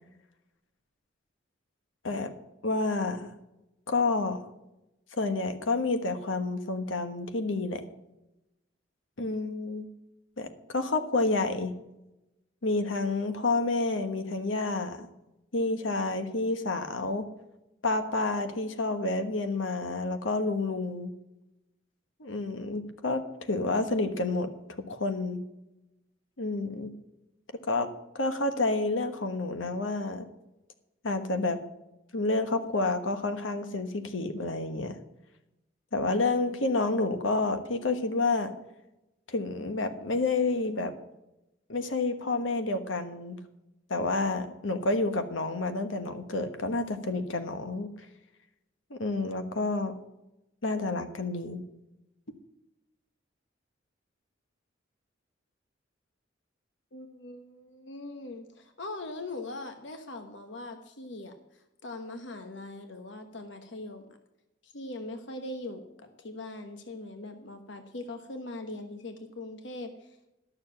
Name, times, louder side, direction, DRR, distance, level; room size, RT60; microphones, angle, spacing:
voice 1, 2.6-3.3 3.9-4.4 5.2-7.8 9.2-9.9 10.4-11.7 12.6-15.1 15.5-17.3 17.8-21.1 22.2-23.2 23.5-24.5 24.9-25.4 26.4-26.9 27.7-27.9 28.1-30.2 31.0-31.6 32.1-35.0 35.9-38.5 39.3-40.9 41.7-43.4 43.9-47.9 48.9-49.9 50.6-51.6, left 3 dB, 90° left, 8 dB, 1.3 m, -29 dB
voice 2, 56.9-64.0 64.6-70.2, left 2 dB, 70° left, 7 dB, 1.1 m, -41 dB
12.0 x 6.9 x 7.4 m, 0.92 s
head